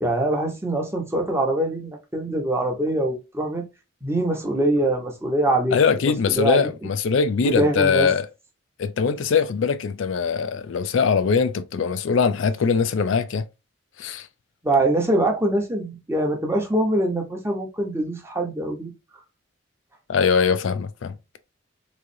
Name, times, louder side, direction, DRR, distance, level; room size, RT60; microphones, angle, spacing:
voice 1, 0.0-3.6 4.0-5.8 6.0-6.7 7.4-8.1 14.6-18.9, right 1 dB, 10° right, 0.9 m, -23 dB
voice 2, 5.7-8.3 8.8-13.4 14.0-14.3 20.1-21.1, left 6 dB, 65° left, 0.4 m, -22 dB
3.6 x 3.2 x 2.6 m
head